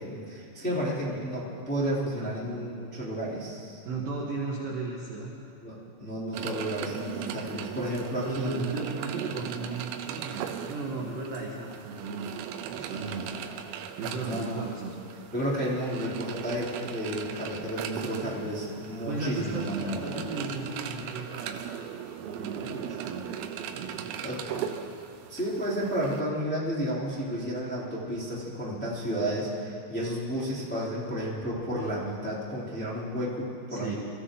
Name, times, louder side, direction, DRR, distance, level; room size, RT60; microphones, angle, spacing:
voice 1, 0.0-3.8 5.6-8.6 12.9-13.2 14.2-14.7 15.3-20.0 24.2-24.4 25.3-33.9, equal, 5° left, -8 dB, 1.8 m, -32 dB
voice 2, 2.2-2.6 3.8-5.3 8.2-12.3 12.7-13.4 14.0-15.0 19.1-21.6 22.2-23.4 23.8-24.1 33.7-33.9, right 3 dB, 70° right, -2 dB, 2.2 m, -35 dB
sound 1, 6.3-26.2, right 9 dB, 85° right, 3.4 m, -38 dB
25.5 x 15.0 x 3.8 m, 2.5 s
omnidirectional pair, 6.0 m